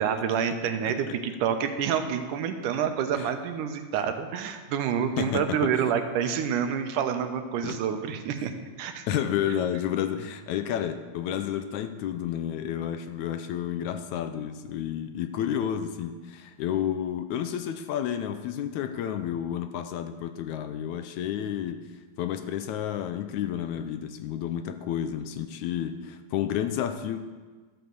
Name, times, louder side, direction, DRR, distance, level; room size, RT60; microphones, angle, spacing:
voice 1, 0.0-8.5 8.8-9.1, right 8 dB, 85° right, 7 dB, 2.4 m, -28 dB
voice 2, 5.2-5.7 7.6-7.8 9.1-21.9 22.2-27.2, left 10 dB, 80° left, 9 dB, 1.9 m, -31 dB
12.5 x 7.8 x 6.8 m, 1.4 s
omnidirectional pair, 3.6 m